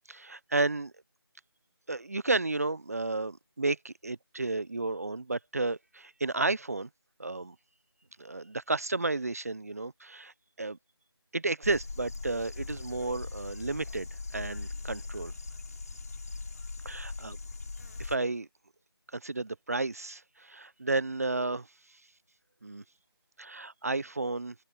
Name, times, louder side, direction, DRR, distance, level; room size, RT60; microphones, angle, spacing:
voice 1, 0.1-0.9 1.9-6.9 7.2-7.6 8.2-10.8 11.3-15.3 16.8-17.4 18.0-18.5 19.1-21.7 22.6-22.8 23.4-24.5, right 3 dB, 35° right, 0.9 m, -32 dB
sound 1, 11.6-18.2, left 3 dB, 40° left, 4.2 m, -40 dB
voice 2, 15.5-17.2 22.7-23.6, right 19 dB, 5° right, 1.7 m, -86 dB
figure-of-eight pair, 175°, 13 cm